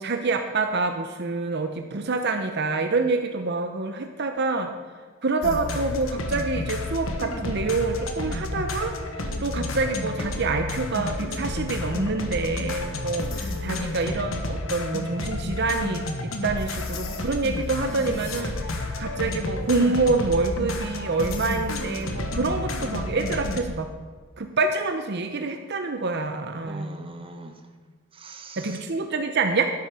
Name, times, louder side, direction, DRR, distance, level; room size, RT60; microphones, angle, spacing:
voice 1, 0.0-4.7 5.2-23.9 24.4-26.9 28.6-29.7, right 3 dB, 55° right, 6 dB, 0.8 m, -27 dB
sound 1, 5.4-23.6, left 2 dB, 70° left, 1.3 m, -31 dB
voice 2, 13.4-13.9 26.6-27.8 28.1-28.9, right 2 dB, 25° right, 5 dB, 1.1 m, -42 dB
12.5 x 10.5 x 5.0 m, 1.5 s
head